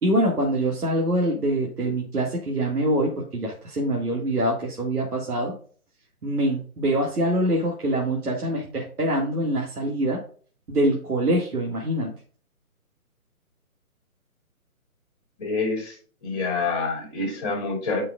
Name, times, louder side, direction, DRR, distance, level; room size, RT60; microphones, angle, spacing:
voice 1, 0.0-5.5 6.2-10.2 10.7-12.1, right 1 dB, 80° right, -2 dB, 2.3 m, -24 dB
voice 2, 15.4-16.0 16.2-18.0, left 3 dB, 25° left, -1 dB, 3.3 m, -27 dB
11.5 x 5.7 x 2.5 m, 0.42 s
hypercardioid pair, 165°, 44 cm